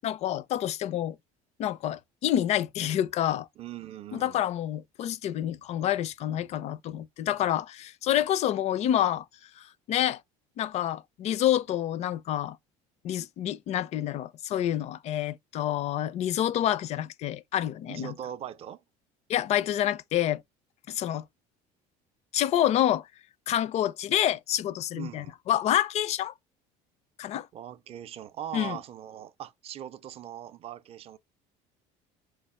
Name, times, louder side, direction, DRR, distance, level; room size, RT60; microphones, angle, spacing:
voice 1, 0.0-1.2 1.6-3.5 4.1-9.2 9.9-10.2 10.6-12.6 13.0-18.1 19.3-20.4 20.9-21.2 22.3-23.1 23.5-26.3 27.2-27.5 28.5-28.8, left 11 dB, 45° left, 0.4 m, -28 dB
voice 2, 3.6-4.4 17.9-18.8 24.9-25.4 27.5-31.2, right 11 dB, 40° right, 0.5 m, -40 dB
4.5 x 2.4 x 4.2 m
cardioid pair, 125°, 16 cm